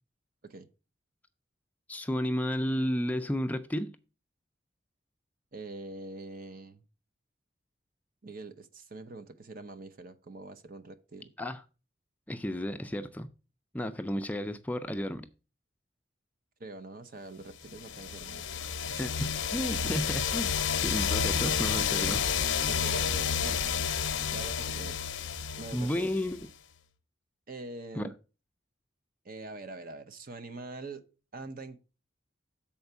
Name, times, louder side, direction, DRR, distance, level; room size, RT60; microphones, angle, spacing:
voice 1, 1.9-3.9 11.4-11.6 12.3-13.3 13.7-15.3 19.0-20.5 20.8-22.3 25.7-26.5 27.9-28.1, equal, 10° left, 0.4 m, -32 dB
voice 2, 5.5-6.8 8.2-11.3 16.6-19.0 22.7-23.7 24.3-25.0 25.6-26.1 27.5-28.1 29.2-31.0 31.3-31.8, right 2 dB, 50° right, 0.8 m, -44 dB
sound 1, 17.7-26.5, left 7 dB, 90° left, 0.7 m, -30 dB
7.1 x 4.4 x 6.7 m
head